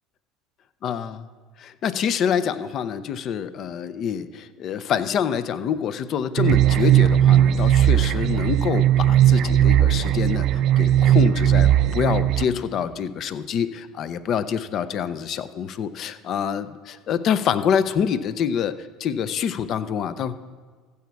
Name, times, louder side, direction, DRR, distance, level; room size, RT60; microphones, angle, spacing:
voice 1, 0.8-1.3 1.6-20.4, left 8 dB, 50° left, 13 dB, 0.7 m, -26 dB
sound 1, 6.4-12.4, right 11 dB, 55° right, 0.4 m, -18 dB
15.0 x 7.1 x 4.7 m, 1.5 s
supercardioid pair, 95°, 0 cm